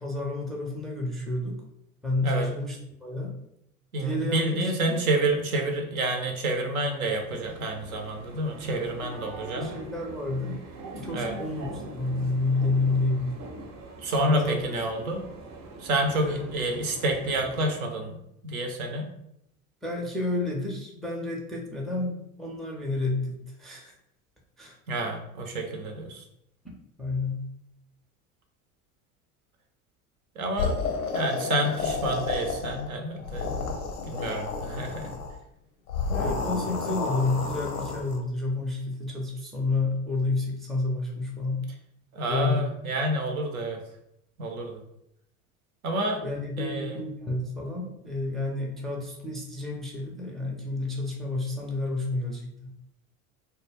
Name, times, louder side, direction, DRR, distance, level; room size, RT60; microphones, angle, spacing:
voice 1, 0.0-1.6 2.0-3.3 4.0-5.0 9.0-10.6 11.0-13.4 14.2-14.6 16.1-16.4 19.8-23.9 24.6-24.8 26.6-26.7 27.0-27.4 36.1-41.7 42.3-42.6 46.2-52.7, left 2 dB, ahead, -2 dB, 0.4 m, -30 dB
voice 2, 3.9-9.7 11.1-11.3 14.0-15.3 15.8-18.2 18.4-19.1 24.9-26.2 30.4-30.8 31.1-33.6 34.1-35.1 42.1-43.8 44.4-44.8 45.8-46.2 46.6-47.0, right 1 dB, 80° right, 3 dB, 0.7 m, -28 dB
sound 1, 7.1-17.9, right 2 dB, 40° right, 0.7 m, -43 dB
sound 2, 30.6-32.9 33.2-35.3 35.9-38.2, left 4 dB, 85° left, 0.6 m, -31 dB
2.2 x 2.2 x 3.3 m, 0.79 s
hypercardioid pair, 75°, 42 cm